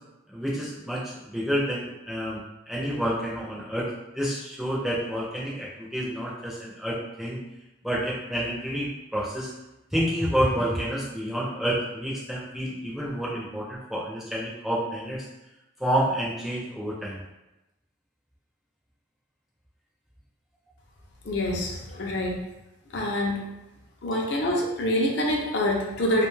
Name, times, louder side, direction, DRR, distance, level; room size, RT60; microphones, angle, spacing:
voice 1, 0.3-7.4 7.8-9.5 9.9-15.2 15.8-17.2, equal, ahead, -6 dB, 0.4 m, -29 dB
voice 2, 21.2-22.4 22.9-23.4 24.0-26.3, left 1 dB, 60° left, 0 dB, 0.5 m, -26 dB
2.4 x 2.2 x 3.1 m, 0.96 s
head